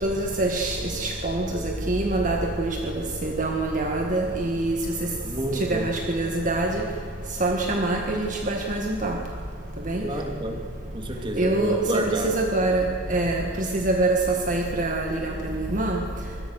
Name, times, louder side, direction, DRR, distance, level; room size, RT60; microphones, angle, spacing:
voice 1, 0.0-4.8 5.0-5.1 5.5-6.9 7.4-9.2 9.9-10.0 11.4-16.0, right 2 dB, 40° right, 1 dB, 1.8 m, -25 dB
voice 2, 5.2-5.9 10.0-10.6 10.9-12.4, right 2 dB, 25° right, 3 dB, 2.7 m, -28 dB
25.5 x 21.0 x 6.5 m, 2.5 s
head